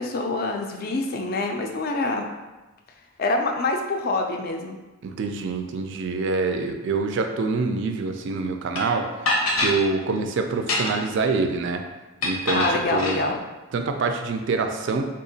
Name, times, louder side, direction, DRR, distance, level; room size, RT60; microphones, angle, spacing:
voice 1, 0.0-2.3 3.2-4.8 12.5-13.4, left 2 dB, 45° left, 3 dB, 0.3 m, -26 dB
voice 2, 5.0-9.1 9.6-11.8 12.2-13.2 13.7-15.0, right 4 dB, 55° right, 5 dB, 0.3 m, -25 dB
sound 1, 8.8-8.9 9.3-9.8 10.6-11.1 12.2-13.2, left 2 dB, 85° left, 0.6 m, -24 dB
3.5 x 2.8 x 2.7 m, 1.1 s
head